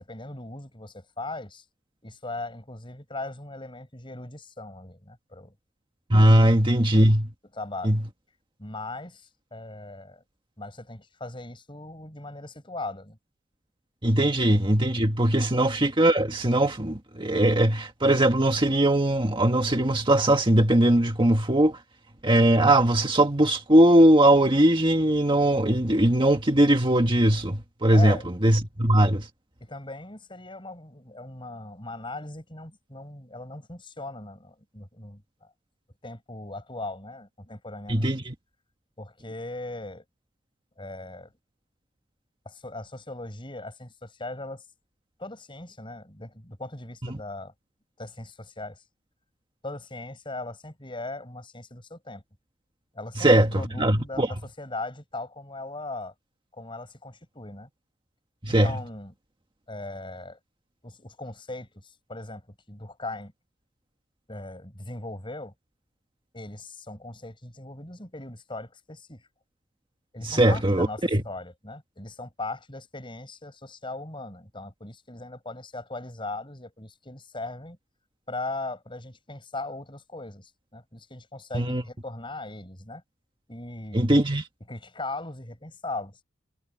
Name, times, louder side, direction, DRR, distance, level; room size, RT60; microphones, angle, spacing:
voice 1, 0.0-1.6 2.0-5.5 7.5-8.0 8.6-10.2 10.6-13.2 27.9-28.3 29.6-35.5 36.0-38.1 39.0-40.0 40.8-41.3 42.4-44.6 45.2-47.5 48.0-48.8 49.6-52.2 52.9-56.1 56.5-57.7 58.5-59.1 59.7-60.4 60.8-62.4 62.7-63.3 64.3-65.5 66.3-69.3 70.1-77.8 78.3-83.0 83.5-84.1 84.7-86.2, left 2 dB, 25° left, 6.4 m, -39 dB
voice 2, 6.1-7.3 7.8-8.0 14.0-21.8 22.2-29.3 37.9-38.3 47.1-47.2 53.2-53.5 53.8-54.3 58.4-58.7 70.2-71.2 81.5-81.8 83.9-84.4, right 1 dB, 25° right, 1.6 m, -20 dB
head